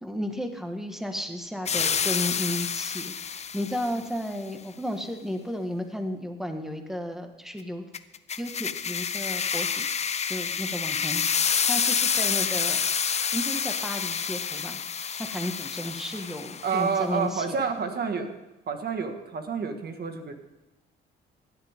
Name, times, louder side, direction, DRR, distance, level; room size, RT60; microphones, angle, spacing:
voice 1, 0.0-7.8 8.4-9.9 10.3-11.2 11.7-12.8 13.3-14.8 15.2-17.6, equal, ahead, 5 dB, 1.7 m, -33 dB
sound 1, 1.7-4.0 7.9-16.9, left 6 dB, 35° left, 0.6 m, -28 dB
voice 2, 16.6-18.4 18.7-20.3, right 5 dB, 55° right, 5 dB, 1.8 m, -29 dB
16.5 x 11.0 x 3.7 m, 1.0 s
cardioid pair, 90°, 20 cm